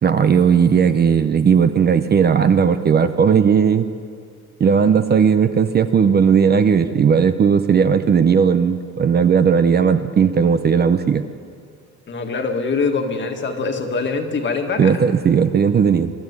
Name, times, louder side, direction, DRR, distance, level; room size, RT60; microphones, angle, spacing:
voice 1, 0.0-3.9 4.6-11.2 14.8-16.1, right 6 dB, 35° right, 10 dB, 0.6 m, -16 dB
voice 2, 12.1-15.0, left 4 dB, 40° left, 4 dB, 1.8 m, -23 dB
23.0 x 12.5 x 9.7 m, 2.3 s
cardioid pair, 160°, 30 cm